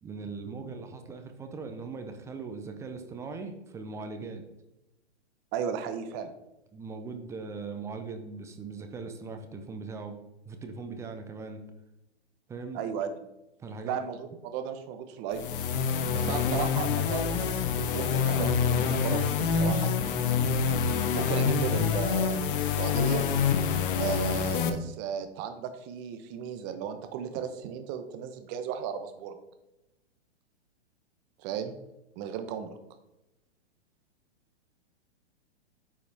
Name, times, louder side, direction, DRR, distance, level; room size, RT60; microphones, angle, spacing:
voice 1, 0.0-4.5 6.7-10.2 10.5-11.6 12.5-12.8 13.6-14.0, right 4 dB, 10° right, 6 dB, 0.4 m, -40 dB
voice 2, 5.5-6.3 12.7-13.1 13.8-15.6 16.1-19.9 21.1-23.3 23.9-29.4 31.4-31.8 32.2-32.8, right 8 dB, 30° right, 8 dB, 0.9 m, -35 dB
sound 1, 15.3-24.7, left 6 dB, 50° left, 0.9 m, -27 dB
8.6 x 4.9 x 3.4 m, 0.93 s
hypercardioid pair, 125°, 34 cm